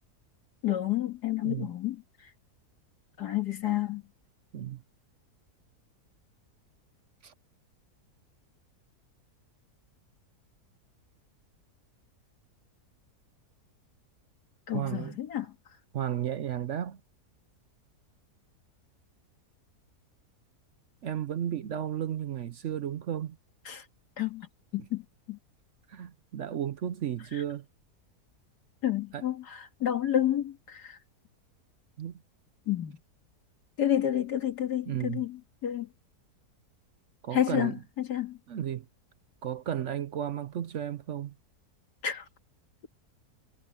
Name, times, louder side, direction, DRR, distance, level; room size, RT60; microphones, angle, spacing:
voice 1, 0.6-2.0 3.2-4.0 14.7-15.5 23.7-23.8 24.2-24.5 24.7-25.0 25.3-25.4 28.8-31.0 32.7-33.0 33.8-35.9 37.3-38.4 42.0-42.3, left 11 dB, 85° left, 2.4 m, -30 dB
voice 2, 14.7-15.2 15.9-17.0 21.0-23.4 24.8-24.9 25.9-27.6 29.1-29.2 32.0-32.2 34.9-35.3 37.2-37.8 38.5-38.9 39.4-41.3, right 10 dB, 60° right, 0.9 m, -34 dB
omnidirectional pair, 1.7 m